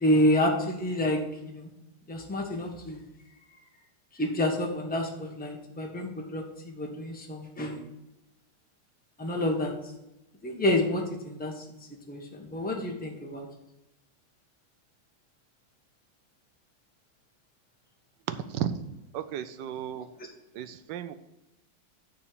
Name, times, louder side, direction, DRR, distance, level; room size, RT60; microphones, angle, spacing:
voice 1, 0.0-1.2 1.5-1.7 2.1-3.0 4.2-7.8 9.2-9.7 10.4-11.5 12.1-13.5, left 1 dB, 5° left, 1 dB, 0.9 m, -28 dB
voice 2, 18.3-18.8 19.1-20.1 20.5-21.1, right 9 dB, 75° right, 11 dB, 1.3 m, -34 dB
9.5 x 4.3 x 6.7 m, 0.93 s
omnidirectional pair, 2.0 m